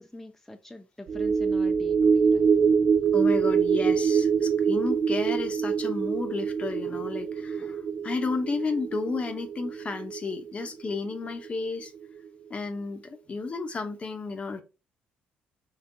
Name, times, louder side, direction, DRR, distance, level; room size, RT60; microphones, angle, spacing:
voice 1, 0.0-2.6, left 1 dB, 5° left, 0.4 m, -44 dB
sound 1, 1.1-11.7 12.0-12.2, right 6 dB, 50° right, 0.4 m, -25 dB
voice 2, 3.1-11.9 12.5-14.6, left 4 dB, 35° left, 0.7 m, -32 dB
3.7 x 3.3 x 2.6 m
cardioid pair, 85°, 4 cm